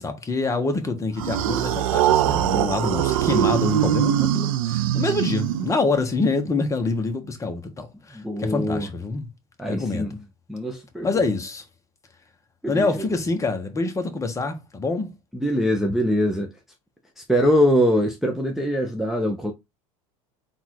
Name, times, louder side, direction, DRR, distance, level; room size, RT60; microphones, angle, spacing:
voice 1, 0.0-9.3 9.7-10.1 11.0-11.7 12.7-15.1, left 3 dB, 20° left, 1.0 m, -26 dB
sound 1, 1.2-6.0, right 12 dB, 85° right, 0.5 m, -22 dB
voice 2, 7.9-8.9 9.6-10.2 10.5-11.2 12.6-13.1 15.3-16.6 17.2-19.5, equal, ahead, 0.7 m, -23 dB
3.9 x 2.5 x 4.5 m
supercardioid pair, 110°, 17 cm